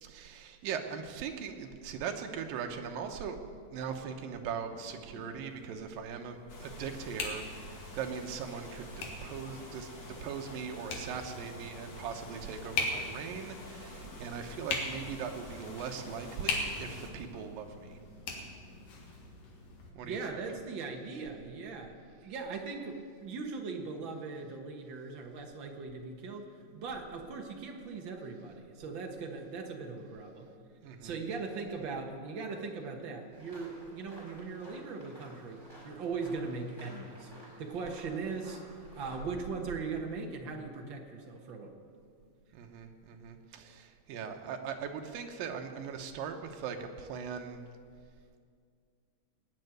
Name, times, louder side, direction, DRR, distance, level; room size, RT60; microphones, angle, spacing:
voice 1, 0.0-3.4 3.7-18.0 19.9-20.4 30.8-31.2 42.5-47.6, right 7 dB, 80° right, 5 dB, 2.7 m, -40 dB
sound 1, 4.7-19.9, left 3 dB, 80° left, 3.4 m, -41 dB
sound 2, 6.5-17.1, left 2 dB, 35° left, 2.2 m, -48 dB
voice 2, 20.0-21.9 22.2-30.5 31.0-37.3 37.6-38.6 38.9-41.8, right 4 dB, 55° right, 3 dB, 1.4 m, -39 dB
sound 3, 33.3-39.2, equal, 5° right, 4.7 m, -54 dB
19.0 x 6.6 x 9.2 m, 2.2 s
omnidirectional pair, 4.0 m